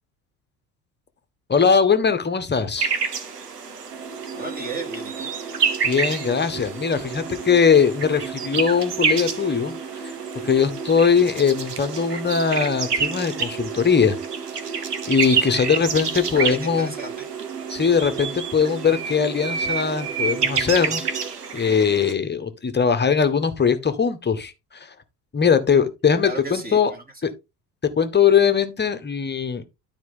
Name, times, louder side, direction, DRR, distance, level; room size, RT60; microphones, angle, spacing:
voice 1, 1.5-2.9 5.8-9.7 10.4-14.2 15.1-16.9 17.7-21.0 21.5-24.9 25.3-26.9 27.2-27.3 28.0-29.6, left 6 dB, 20° left, 1.4 m, -20 dB
sound 1, 2.8-22.1, right 5 dB, 85° right, 1.1 m, -29 dB
sound 2, 3.9-21.3, right 6 dB, 65° right, 1.6 m, -36 dB
voice 2, 4.3-5.3 16.3-17.3 26.2-27.0, right 3 dB, 20° right, 3.6 m, -34 dB
12.5 x 4.6 x 3.8 m
figure-of-eight pair, 60°, 46 cm